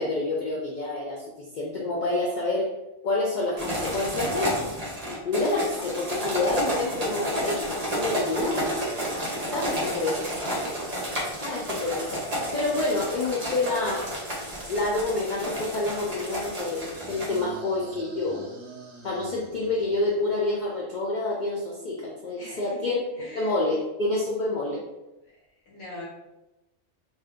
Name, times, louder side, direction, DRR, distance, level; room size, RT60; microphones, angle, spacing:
voice 1, 0.0-2.7 3.0-4.7 5.1-8.7 9.4-10.5 11.4-12.2 12.5-14.1 14.7-18.4 19.0-23.0 23.3-24.8, left 2 dB, 60° left, -3 dB, 0.5 m, -28 dB
sound 1, 3.6-17.4, equal, 35° right, 0.8 m, -31 dB
sound 2, 9.0-14.4 16.8-20.8, right 3 dB, 65° right, 0.9 m, -48 dB
voice 2, 9.6-10.0 11.7-12.0 22.4-22.8 23.2-23.5 25.3-26.0, left 1 dB, 75° left, -6 dB, 1.3 m, -43 dB
2.7 x 2.3 x 3.5 m, 0.96 s
omnidirectional pair, 1.3 m